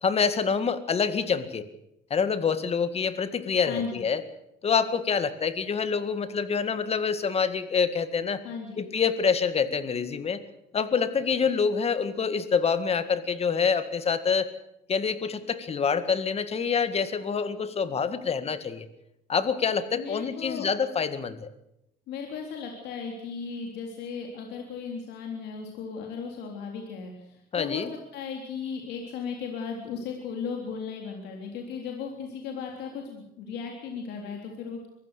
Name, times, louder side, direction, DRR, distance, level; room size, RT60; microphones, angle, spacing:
voice 1, 0.0-1.7 2.1-4.2 4.6-8.4 8.8-10.4 10.7-14.5 14.9-18.9 19.3-21.5 27.5-27.9, left 6 dB, 35° left, 12 dB, 1.9 m, -26 dB
voice 2, 3.7-4.0 8.4-8.9 19.9-20.7 22.1-27.8 28.1-34.9, left 5 dB, 80° left, 1 dB, 3.6 m, -36 dB
23.5 x 15.5 x 8.3 m, 0.83 s
cardioid pair, 110°, 17 cm